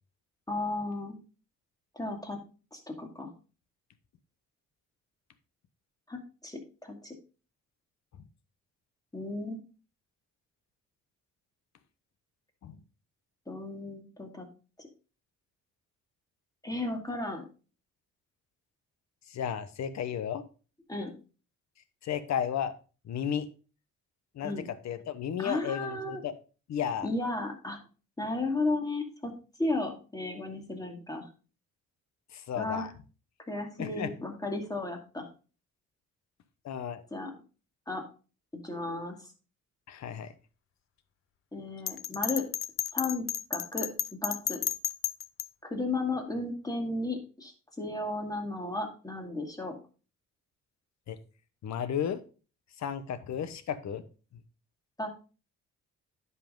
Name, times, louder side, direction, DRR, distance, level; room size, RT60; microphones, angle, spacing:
voice 1, 0.5-1.2 1.9-2.4 2.7-3.3 6.1-7.1 9.1-9.6 13.5-14.5 14.8-14.9 16.6-17.4 20.9-21.1 24.4-24.7 25.4-26.2 27.0-27.8 28.2-29.3 29.6-31.3 32.6-32.9 33.5-35.3 37.1-37.3 37.9-38.0 38.5-39.3 41.5-42.4 42.9-43.2 43.5-44.6 45.6-49.7 55.0-55.1, left 2 dB, 10° left, 2 dB, 2.3 m, -34 dB
voice 2, 19.3-20.4 22.0-22.7 23.1-23.4 24.3-26.3 26.7-27.1 32.3-32.9 33.8-34.1 36.6-37.0 39.9-40.3 51.1-51.2 51.6-52.2 52.8-54.0, left 8 dB, 65° left, 13 dB, 1.0 m, -33 dB
Bell, 41.9-45.5, left 10 dB, 45° left, 0.6 m, -32 dB
10.0 x 5.6 x 3.8 m, 0.36 s
cardioid pair, 90°, 30 cm